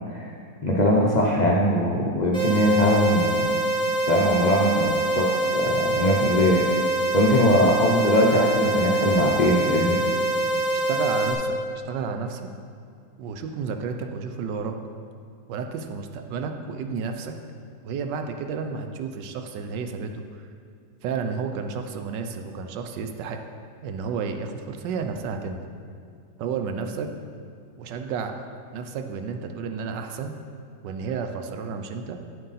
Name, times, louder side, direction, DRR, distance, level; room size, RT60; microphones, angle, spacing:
voice 1, 0.6-3.5 4.1-6.6 7.1-10.0, equal, 90° left, -3 dB, 0.3 m, -21 dB
sound 1, 2.3-11.3, right 1 dB, 5° left, 1.0 m, -25 dB
voice 2, 10.9-11.6 11.9-12.5 13.2-14.7 15.5-17.3 17.8-20.4 21.0-23.4 23.8-25.7 26.4-27.1 27.8-30.3 30.8-32.2, right 5 dB, 80° right, 6 dB, 1.3 m, -31 dB
8.0 x 7.5 x 4.1 m, 2.4 s
omnidirectional pair, 1.9 m